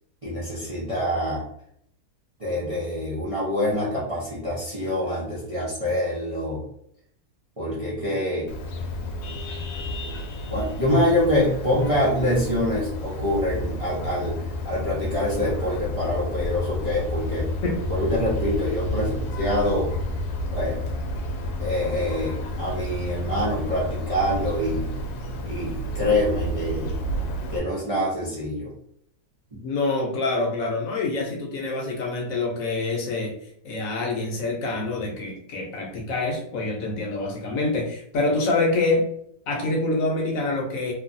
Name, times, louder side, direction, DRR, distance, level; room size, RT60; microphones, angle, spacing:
voice 1, 0.2-1.4 2.4-6.6 7.6-8.5 10.5-14.4 14.6-17.5 17.9-19.9 20.5-20.8 21.6-24.9 25.4-26.9 27.5-28.7 29.5-29.6, left 1 dB, 40° right, -7 dB, 0.4 m, -25 dB
Vehicle horn car horn honking, 8.5-27.6, left 1 dB, 90° left, 1.1 m, -30 dB
voice 2, 29.6-33.4 33.6-39.1 39.5-40.9, left 2 dB, 65° left, 0 dB, 1.0 m, -26 dB
3.1 x 2.3 x 2.5 m, 0.70 s
omnidirectional pair, 1.7 m